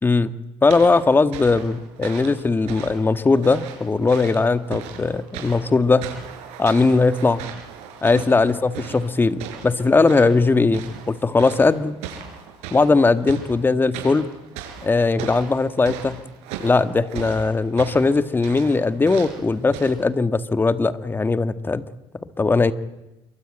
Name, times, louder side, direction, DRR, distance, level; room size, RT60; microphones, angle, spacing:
voice 1, 0.0-0.4 0.6-6.1 6.6-7.4 8.0-12.0 12.7-14.3 14.8-16.2 16.6-21.8 22.1-22.7, left 3 dB, 20° left, 12 dB, 1.6 m, -19 dB
sound 1, 0.7-19.9, right 8 dB, 80° right, 6.2 m, -38 dB
28.5 x 23.5 x 9.0 m, 0.96 s
supercardioid pair, 95°, 11 cm